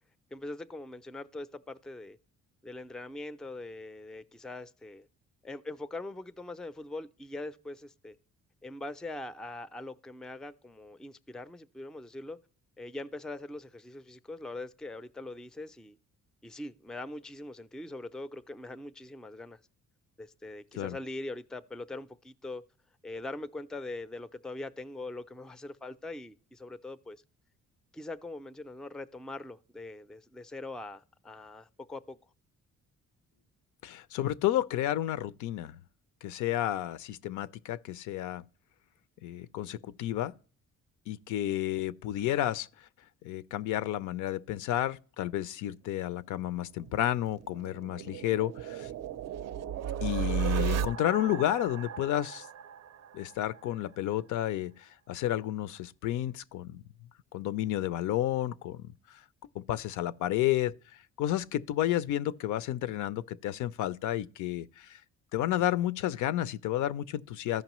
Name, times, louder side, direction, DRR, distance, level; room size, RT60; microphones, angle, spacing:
voice 1, 0.3-2.2 2.6-5.1 5.4-8.2 8.6-12.4 12.8-16.0 16.4-19.6 20.2-22.6 23.0-27.2 27.9-32.2, left 2 dB, ahead, 0.3 m, -42 dB
voice 2, 33.8-35.8 36.2-38.4 39.2-40.3 41.1-42.7 43.2-48.9 50.0-52.5 53.1-56.8 57.3-58.8 59.1-59.2 59.5-60.7 61.2-65.0 65.3-67.6, left 13 dB, 80° left, 0.5 m, -31 dB
sound 1, 46.9-53.7, right 8 dB, 60° right, 0.4 m, -35 dB
14.5 x 5.3 x 3.0 m
cardioid pair, 90°, 30 cm